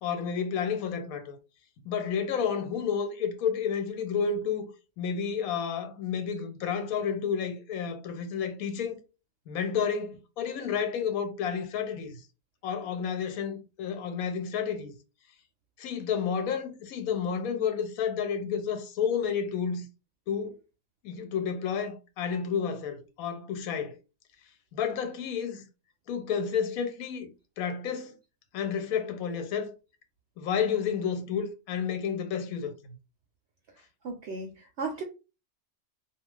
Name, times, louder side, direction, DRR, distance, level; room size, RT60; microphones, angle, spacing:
voice 1, 0.0-1.4 1.9-4.7 5.0-9.0 9.5-12.2 12.6-14.9 15.8-19.9 20.3-20.6 21.0-24.0 24.7-25.6 26.1-28.1 28.5-29.7 30.4-32.7, left 7 dB, 90° left, 1.1 m, -31 dB
voice 2, 34.0-35.0, right 3 dB, 65° right, 0.7 m, -35 dB
2.4 x 2.3 x 3.1 m
omnidirectional pair, 1.5 m